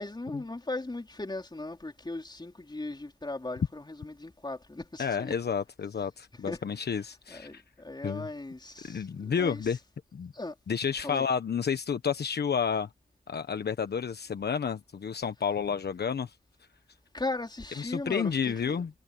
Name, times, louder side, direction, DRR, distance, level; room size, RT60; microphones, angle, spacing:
voice 1, 0.0-5.3 6.5-6.6 7.3-9.7 10.3-10.5 11.0-11.3 17.1-18.8, left 2 dB, 25° left, 4.4 m, -38 dB
voice 2, 5.0-7.6 8.0-8.3 8.8-9.8 10.1-10.3 10.7-12.9 13.3-16.3 17.8-18.9, left 6 dB, 60° left, 1.2 m, -30 dB
cardioid pair, 55°, 19 cm